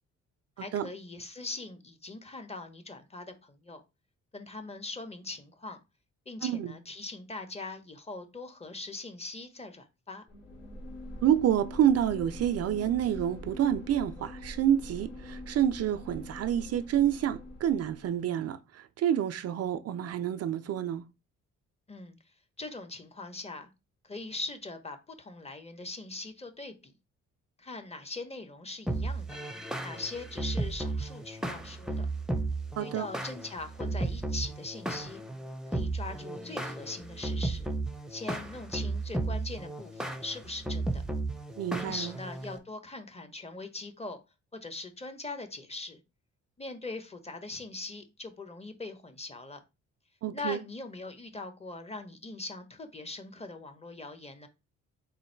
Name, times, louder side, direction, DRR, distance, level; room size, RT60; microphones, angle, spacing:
voice 1, 0.6-3.8 4.3-5.8 6.3-10.2 21.9-22.2 22.6-23.7 24.0-26.9 27.6-29.3 29.8-32.1 32.8-35.2 35.7-37.7 38.1-41.0 41.7-44.2 44.5-46.0 46.6-49.6 50.3-54.5, left 3 dB, 20° left, 0.9 m, -41 dB
voice 2, 6.4-6.7 11.2-21.0 32.8-33.1 41.6-42.1 50.2-50.6, right 10 dB, 55° right, 0.4 m, -28 dB
sound 1, 10.3-18.1, left 1 dB, 55° left, 2.8 m, -44 dB
sound 2, 28.9-42.6, right 2 dB, ahead, 0.7 m, -34 dB
3.8 x 2.6 x 4.4 m
cardioid pair, 90°, 30 cm